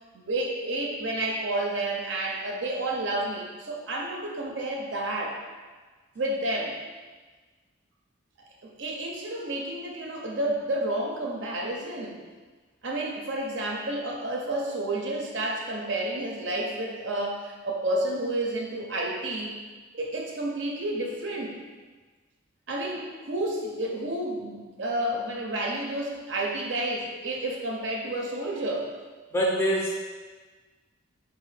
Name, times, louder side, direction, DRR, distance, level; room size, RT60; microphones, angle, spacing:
voice 1, 0.1-5.4 6.1-6.8 8.6-12.2 12.8-19.5 19.9-21.6 22.7-28.9, right 1 dB, 60° right, 0 dB, 0.6 m, -30 dB
voice 2, 29.3-29.9, equal, 10° left, -3 dB, 0.5 m, -24 dB
4.0 x 2.6 x 4.8 m, 1.4 s
head